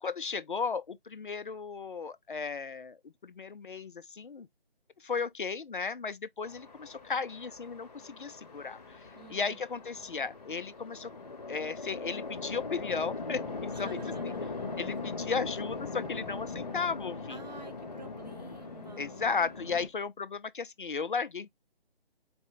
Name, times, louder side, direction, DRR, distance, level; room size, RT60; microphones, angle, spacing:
voice 1, 0.0-4.5 5.0-9.0 9.3-11.1 11.5-13.9 14.8-17.4 19.0-21.5, left 5 dB, 55° left, 0.4 m, -35 dB
Chatter / Traffic noise roadway noise / Train, 6.4-19.9, left 3 dB, 40° left, 0.9 m, -40 dB
voice 2, 9.1-9.6 13.7-14.8 17.3-19.4, right 4 dB, 40° right, 1.0 m, -50 dB
4.2 x 2.1 x 3.9 m
figure-of-eight pair, 150°, 31 cm